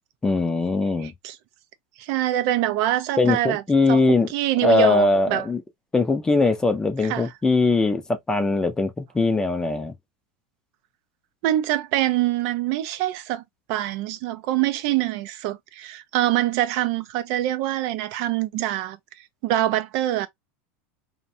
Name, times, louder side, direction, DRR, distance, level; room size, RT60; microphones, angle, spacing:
voice 1, 0.2-1.1 3.2-4.3 4.6-5.6 5.9-9.9, left 3 dB, 10° left, 0.4 m, -21 dB
voice 2, 1.0-1.4 2.0-3.6 3.9-4.0 4.3-5.5 7.0-7.3 11.4-13.4 13.7-20.3, right 13 dB, 55° right, 0.4 m, -25 dB
2.5 x 2.1 x 2.6 m
supercardioid pair, 145°, 7 cm